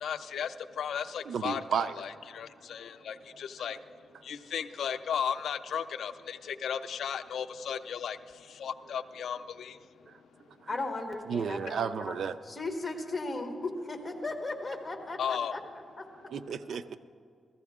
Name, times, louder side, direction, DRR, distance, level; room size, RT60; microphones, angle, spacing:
voice 1, 0.0-3.8 4.2-8.2 8.5-9.8 15.2-15.6, left 8 dB, 80° left, 11 dB, 0.4 m, -35 dB
voice 2, 1.3-2.0 11.3-12.3 16.3-17.0, right 7 dB, 70° right, 13 dB, 0.4 m, -32 dB
voice 3, 10.7-12.2 12.4-13.5 13.8-15.6 16.0-16.1, left 2 dB, 25° left, 4 dB, 1.3 m, -36 dB
15.0 x 14.5 x 3.6 m, 2.3 s
cardioid pair, 115°, 0 cm